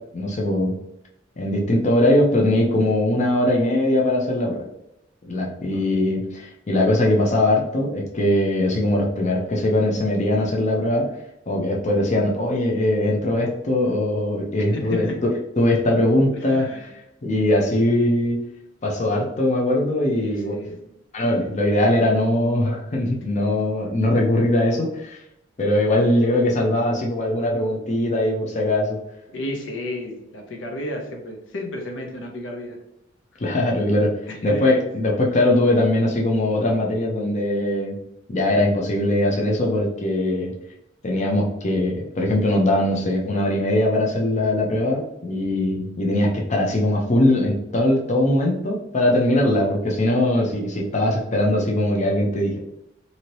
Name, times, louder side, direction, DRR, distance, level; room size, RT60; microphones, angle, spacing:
voice 1, 0.1-0.7 1.4-4.7 5.2-11.1 11.5-15.3 15.6-16.9 17.2-18.4 18.8-20.6 21.1-25.2 25.6-29.0 33.4-34.1 34.4-38.0 38.3-40.5 41.0-52.6, left 1 dB, 40° left, -1 dB, 0.6 m, -21 dB
voice 2, 14.6-15.2 16.4-16.9 20.1-20.9 29.3-32.8 34.3-34.7, left 1 dB, 85° left, 2 dB, 0.6 m, -33 dB
2.7 x 2.7 x 3.0 m, 0.82 s
head